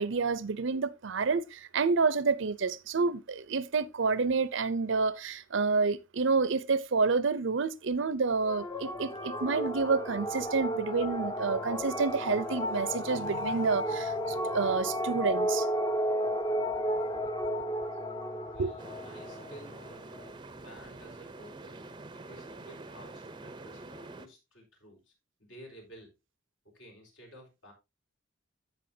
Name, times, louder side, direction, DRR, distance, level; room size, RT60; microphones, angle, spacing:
voice 1, 0.0-15.7 18.6-18.7, right 4 dB, 65° right, 0.6 m, -29 dB
sound 1, 8.4-20.3, equal, 20° left, 0.7 m, -33 dB
voice 2, 18.4-20.1 20.4-21.8 22.1-25.1 25.4-26.1 26.6-27.7, equal, 70° left, 4.2 m, -53 dB
sound 2, 18.8-24.3, right 2 dB, 25° right, 0.6 m, -46 dB
15.0 x 5.5 x 2.7 m
head